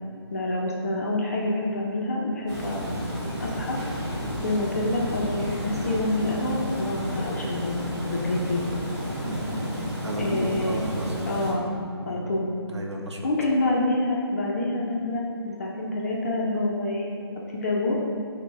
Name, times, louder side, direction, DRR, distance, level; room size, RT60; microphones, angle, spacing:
voice 1, 0.3-3.8 4.4-8.6 10.2-10.8 11.2-11.7 12.1-12.5 13.2-17.1 17.5-17.9, left 2 dB, 35° left, -3 dB, 0.4 m, -27 dB
Water, 2.5-11.5, equal, 40° right, 1.0 m, -32 dB
sound 1, 3.7-7.4, equal, 10° right, 0.8 m, -39 dB
voice 2, 9.2-9.6 10.0-11.2 12.0-12.3 12.7-13.2, right 1 dB, 85° right, 0 dB, 0.6 m, -33 dB
5.0 x 2.0 x 3.1 m, 2.3 s
figure-of-eight pair, 150°, 14 cm